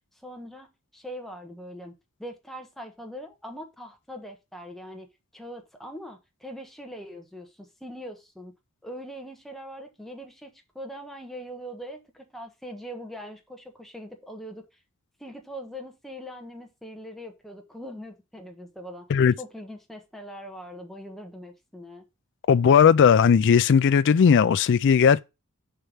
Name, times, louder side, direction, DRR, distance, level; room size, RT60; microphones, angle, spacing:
voice 1, 0.2-1.9 2.2-5.1 5.3-8.5 8.8-14.7 15.2-19.1 19.4-22.0, equal, ahead, 1.3 m, -41 dB
voice 2, 22.5-25.2, left 7 dB, 55° left, 0.4 m, -17 dB
6.8 x 4.5 x 5.4 m
head